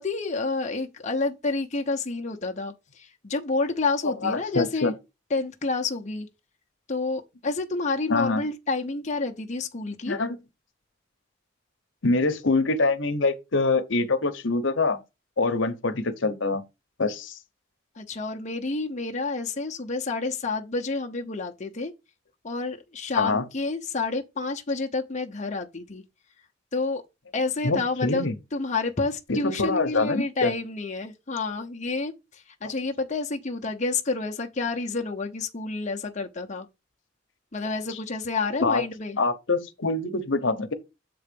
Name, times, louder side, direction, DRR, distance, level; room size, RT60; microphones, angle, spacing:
voice 1, 0.0-4.9 5.3-6.3 6.9-10.2 18.0-21.9 22.4-26.0 26.7-27.0 27.3-36.7 37.5-39.2, left 3 dB, 35° left, 0.8 m, -29 dB
voice 2, 4.0-4.9 8.1-8.4 10.1-10.4 12.0-15.0 15.4-16.6 17.0-17.4 23.2-23.4 27.6-28.4 29.3-30.5 32.6-32.7 38.6-38.8 39.2-40.7, left 3 dB, 75° left, 1.0 m, -25 dB
7.6 x 3.9 x 5.3 m
head